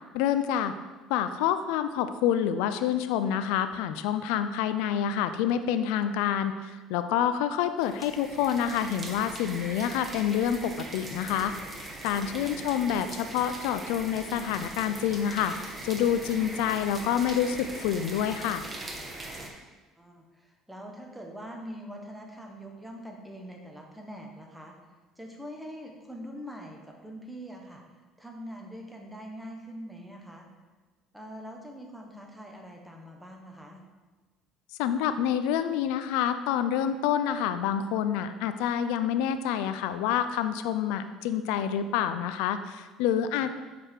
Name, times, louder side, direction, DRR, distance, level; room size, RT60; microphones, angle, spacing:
voice 1, 0.1-0.7 1.1-18.7 34.8-43.5, left 9 dB, 85° left, 10 dB, 0.4 m, -27 dB
sound 1, 7.8-19.5, right 2 dB, 20° right, 1.1 m, -41 dB
voice 2, 20.0-24.8 25.2-27.8 28.2-30.5 31.1-33.8 43.4-43.5, equal, 5° right, 1 dB, 1.2 m, -43 dB
6.7 x 4.8 x 4.4 m, 1.3 s
cardioid pair, 110°, 0 cm